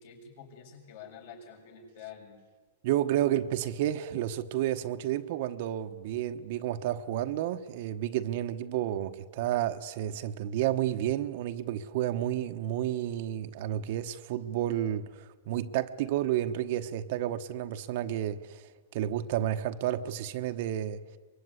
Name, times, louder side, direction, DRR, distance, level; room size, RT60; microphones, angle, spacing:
voice 1, 0.0-2.4, left 7 dB, 55° left, 7.1 m, -48 dB
voice 2, 2.8-18.6 18.9-21.0, right 12 dB, 50° right, 1.1 m, -31 dB
24.0 x 22.5 x 9.8 m
hypercardioid pair, 155°, 0 cm